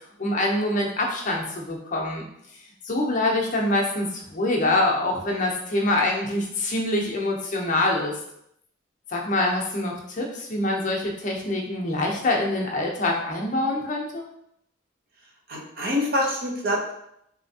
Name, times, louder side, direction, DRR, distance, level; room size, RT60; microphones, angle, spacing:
voice 1, 0.2-2.2 2.8-8.1 9.1-14.2, left 2 dB, 45° left, -1 dB, 0.6 m, -25 dB
voice 2, 15.5-16.9, left 1 dB, 55° right, -1 dB, 0.7 m, -25 dB
3.3 x 2.8 x 2.7 m, 0.75 s
head